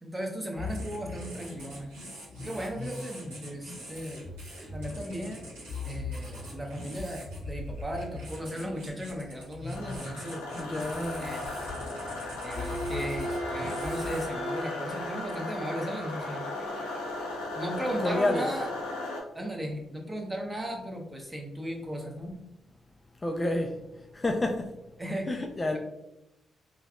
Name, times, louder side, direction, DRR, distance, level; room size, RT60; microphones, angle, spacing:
voice 1, 0.0-1.9 2.4-4.2 4.7-5.5 5.8-10.4 11.2-11.6 12.4-16.4 17.5-18.7 19.3-22.3 25.0-25.3, right 1 dB, 15° right, 0.8 m, -36 dB
sound 1, 0.5-14.3, left 2 dB, 85° right, 1.0 m, -41 dB
sound 2, 9.7-19.2, left 2 dB, 90° left, 0.5 m, -36 dB
voice 2, 10.6-11.3 18.0-18.5 23.2-23.8 24.1-24.7 25.3-25.8, left 2 dB, 30° left, 0.3 m, -29 dB
Bowed string instrument, 12.5-17.4, right 1 dB, 50° right, 1.0 m, -39 dB
3.2 x 2.3 x 2.4 m
hypercardioid pair, 45°, 0 cm